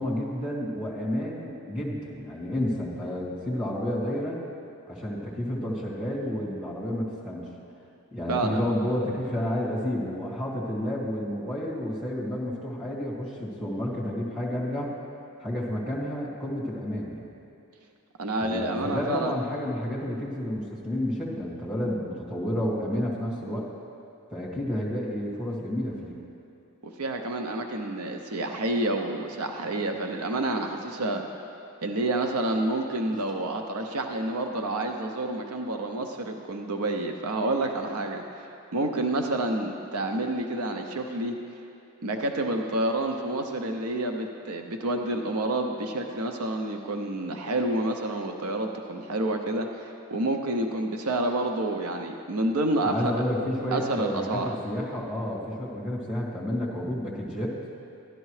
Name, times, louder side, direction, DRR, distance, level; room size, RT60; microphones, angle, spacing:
voice 1, 0.0-4.4 4.9-7.5 8.1-14.9 15.4-17.3 18.4-23.7 24.3-26.1 52.8-57.6, left 1 dB, 5° right, -7 dB, 1.9 m, -30 dB
voice 2, 8.3-8.6 18.2-19.3 26.8-31.2 31.8-41.3 42.0-53.1 53.7-54.5, right 2 dB, 75° right, 4 dB, 0.6 m, -29 dB
12.5 x 11.0 x 3.2 m, 2.7 s
head